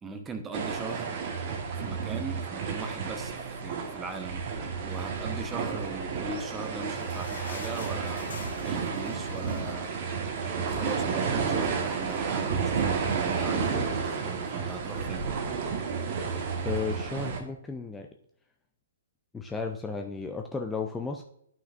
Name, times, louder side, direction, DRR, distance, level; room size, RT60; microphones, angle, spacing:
voice 1, 0.0-1.2 1.8-4.4 4.8-10.2 10.5-15.3, right 4 dB, 15° right, 7 dB, 0.9 m, -39 dB
sound 1, 0.5-17.4, right 5 dB, 40° right, 1.3 m, -31 dB
sound 2, 6.3-11.0 11.4-11.5 11.7-11.9 12.6-12.7, left 5 dB, 65° left, 1.1 m, -46 dB
voice 2, 16.6-18.1 19.3-21.2, left 4 dB, 10° left, 3 dB, 0.5 m, -34 dB
11.5 x 5.9 x 2.5 m, 0.71 s
figure-of-eight pair, 125°, 0 cm